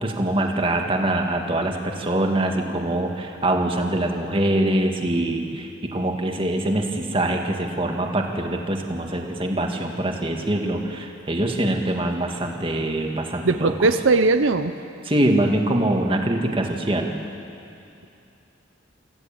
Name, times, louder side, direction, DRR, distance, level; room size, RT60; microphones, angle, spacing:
voice 1, 0.0-13.7 15.0-17.1, right 1 dB, 30° right, 2 dB, 1.9 m, -24 dB
voice 2, 13.4-14.7, right 3 dB, 85° right, 9 dB, 0.8 m, -19 dB
25.5 x 15.5 x 8.9 m, 2.7 s
head